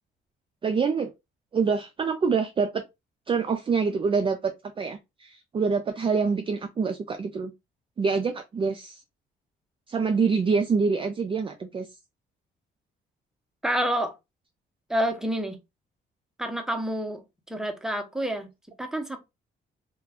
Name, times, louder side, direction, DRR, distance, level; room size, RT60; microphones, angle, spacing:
voice 1, 0.6-1.1 1.5-2.8 3.3-7.5 8.0-9.0 9.9-11.9, right 5 dB, 25° right, 0.3 m, -26 dB
voice 2, 13.6-14.1 14.9-15.6 16.4-17.2 17.5-18.5 18.8-19.2, equal, 5° right, 0.7 m, -28 dB
2.4 x 2.2 x 3.4 m
cardioid pair, 90°, 20 cm